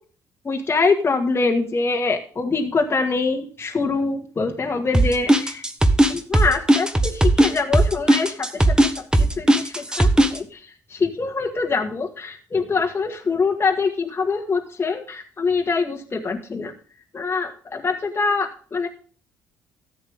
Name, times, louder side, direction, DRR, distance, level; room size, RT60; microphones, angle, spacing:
voice 1, 0.5-5.6 6.1-10.6 10.9-16.7 17.1-18.9, left 4 dB, 30° left, 2 dB, 1.8 m, -24 dB
sound 1, 4.9-10.4, right 1 dB, 10° right, 1.3 m, -16 dB
13.5 x 8.0 x 3.6 m, 0.41 s
supercardioid pair, 65°, 8 cm